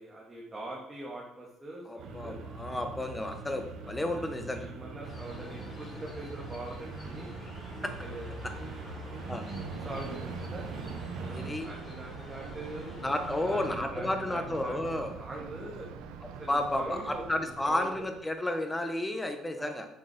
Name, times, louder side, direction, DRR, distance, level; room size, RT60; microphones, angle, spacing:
voice 1, 0.0-2.4 4.1-7.3 8.0-9.1 9.8-10.7 11.2-15.9 16.4-18.1 19.6-19.7, right 2 dB, 20° right, -4 dB, 2.0 m, -43 dB
voice 2, 1.9-4.7 7.8-7.9 9.3-9.4 11.3-11.7 13.0-15.1 16.5-19.9, left 1 dB, 15° left, 6 dB, 1.3 m, -32 dB
sound 1, 2.0-11.5, right 3 dB, 70° right, 1.2 m, -42 dB
sound 2, 5.0-13.7, left 2 dB, 40° left, 2.7 m, -50 dB
Thunder, 9.5-18.3, right 5 dB, 85° right, 0.8 m, -44 dB
7.8 x 6.3 x 4.4 m, 0.83 s
cardioid pair, 90°, 0 cm